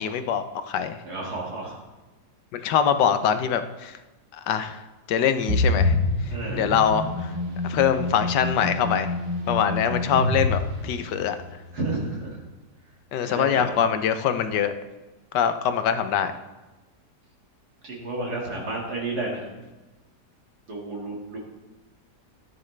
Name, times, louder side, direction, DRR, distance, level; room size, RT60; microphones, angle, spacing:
voice 1, 0.0-1.0 2.5-4.0 4.3-4.8 5.1-6.0 6.5-7.3 7.6-9.1 9.5-11.3 13.1-14.7 15.3-16.3, left 8 dB, 80° left, 10 dB, 1.4 m, -23 dB
voice 2, 1.0-1.8 6.3-6.8 11.7-12.4 13.2-13.7 17.8-19.5 20.7-21.4, right 2 dB, 65° right, -3 dB, 2.6 m, -31 dB
sound 1, 5.5-11.5, left 2 dB, 35° right, 2.1 m, -26 dB
13.5 x 9.7 x 3.3 m, 1.1 s
omnidirectional pair, 1.8 m